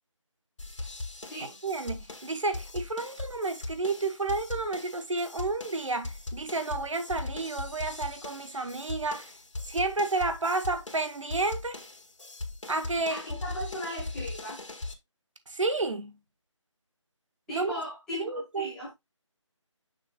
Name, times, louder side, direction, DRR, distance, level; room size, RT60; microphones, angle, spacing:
sound 1, 0.6-14.9, left 2 dB, 70° left, 2.2 m, -39 dB
voice 1, 1.6-9.3 9.7-11.8 12.7-13.2 15.5-16.1 17.5-17.8 18.2-18.7, right 3 dB, 75° right, 1.1 m, -31 dB
voice 2, 13.1-14.6 17.5-18.9, left 1 dB, 5° left, 1.6 m, -38 dB
6.6 x 6.5 x 2.3 m
figure-of-eight pair, 175°, 17 cm